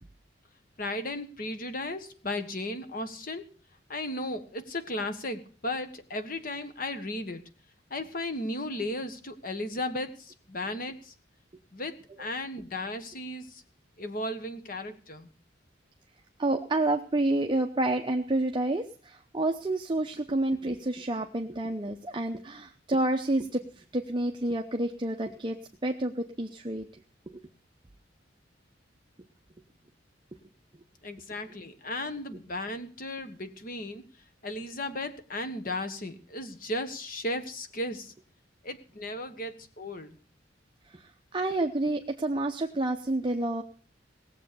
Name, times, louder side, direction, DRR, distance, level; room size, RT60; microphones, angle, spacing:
voice 1, 0.8-3.5 3.9-7.4 7.9-11.1 11.7-11.9 12.2-13.6 14.0-15.3 31.0-34.0 34.4-38.1 38.6-40.1, left 1 dB, 50° left, 9 dB, 1.5 m, -35 dB
voice 2, 16.4-25.6 25.8-26.9 27.3-27.4 40.9-43.6, right 2 dB, 25° right, 4 dB, 0.8 m, -29 dB
18.0 x 7.7 x 6.9 m, 0.41 s
head